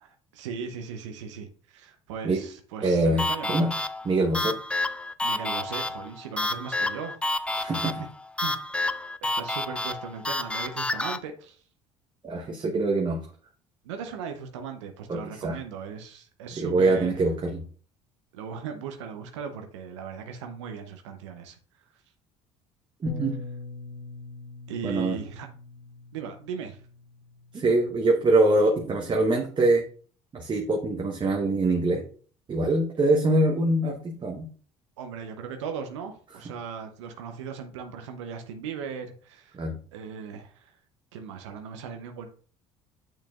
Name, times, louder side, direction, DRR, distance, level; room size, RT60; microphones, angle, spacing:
voice 1, 0.0-3.6 5.2-7.2 7.5-8.1 8.4-8.6 9.2-11.6 13.8-17.2 18.3-21.6 24.7-25.5 26.1-26.8 35.0-39.6 39.9-40.7 41.1-42.3, right 6 dB, 80° right, 5 dB, 0.7 m, -38 dB
voice 2, 2.8-3.7 4.0-4.6 7.6-7.9 12.2-13.2 15.1-15.6 16.6-17.6 23.0-23.3 24.8-25.2 27.5-29.8 30.3-32.0 32.5-34.5 39.5-39.8, right 2 dB, 30° right, 2 dB, 0.9 m, -24 dB
sound 1, 3.2-11.2, left 2 dB, 5° left, 0.4 m, -30 dB
Bass guitar, 23.1-29.3, left 2 dB, 10° right, 1.4 m, -44 dB
6.6 x 6.1 x 2.4 m, 0.42 s
hypercardioid pair, 65°, 15 cm